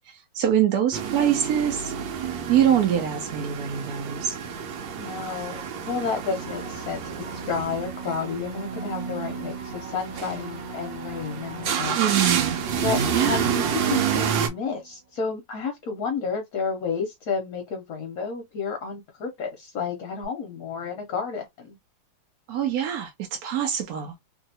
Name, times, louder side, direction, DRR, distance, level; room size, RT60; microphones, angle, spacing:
voice 1, 0.1-1.9 2.5-4.4 12.0-12.6 13.1-13.4 22.5-24.2, right 10 dB, 70° right, 1.0 m, -24 dB
sound 1, 0.9-14.5, right 7 dB, 85° right, 1.4 m, -29 dB
voice 2, 5.0-12.0 12.8-21.8, left 5 dB, 65° left, 1.0 m, -31 dB
sound 2, 6.3-14.9 20.2-20.3, right 5 dB, 20° right, 1.2 m, -37 dB
2.9 x 2.7 x 2.6 m
omnidirectional pair, 2.0 m